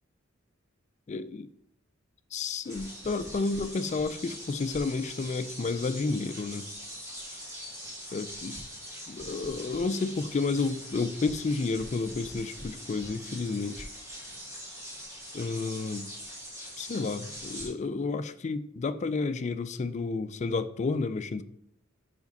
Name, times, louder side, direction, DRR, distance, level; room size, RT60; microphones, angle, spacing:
voice 1, 1.1-1.5 2.3-6.7 8.1-8.6 9.1-13.9 15.3-16.1 16.8-21.4, left 4 dB, 35° left, 11 dB, 0.3 m, -31 dB
sound 1, 2.6-17.7, equal, 15° right, 1.8 m, -42 dB
5.2 x 4.8 x 5.3 m, 0.74 s
head